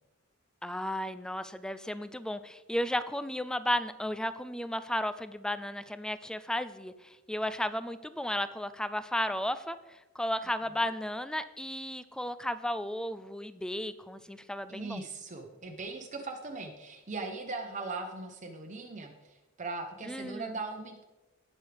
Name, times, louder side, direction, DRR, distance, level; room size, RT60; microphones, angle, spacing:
voice 1, 0.6-9.8 10.2-15.0 20.0-20.6, left 1 dB, 5° left, 12 dB, 0.4 m, -34 dB
voice 2, 14.7-21.0, right 3 dB, 35° right, 2 dB, 0.9 m, -39 dB
18.5 x 6.4 x 3.4 m, 1.1 s
head